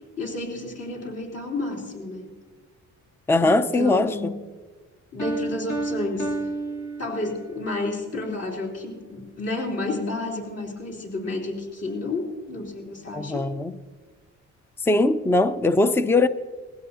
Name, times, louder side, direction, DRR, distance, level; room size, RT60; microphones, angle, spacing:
voice 1, 0.2-2.3 3.4-4.3 5.1-6.4 7.0-13.5, left 2 dB, 55° left, 3.5 m, -31 dB
voice 2, 3.3-4.4 13.1-13.8 14.8-16.3, left 2 dB, 10° left, 0.5 m, -21 dB
Piano, 5.2-7.6, right 2 dB, 85° left, 2.2 m, -31 dB
20.5 x 16.0 x 2.8 m
cardioid pair, 90°, 30 cm